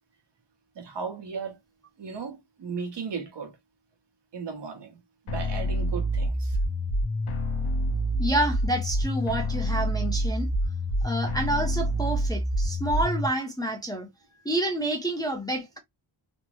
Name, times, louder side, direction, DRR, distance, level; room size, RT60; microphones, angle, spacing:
voice 1, 0.7-1.6 2.0-3.6 4.3-6.6 7.9-8.0, right 5 dB, 55° right, 1.0 m, -36 dB
sound 1, 5.3-13.3, equal, 80° left, 1.0 m, -27 dB
voice 2, 8.2-10.5 11.0-14.1 14.4-15.8, right 1 dB, 10° left, 0.5 m, -28 dB
3.4 x 2.0 x 3.0 m
wide cardioid pair, 155°, 49 cm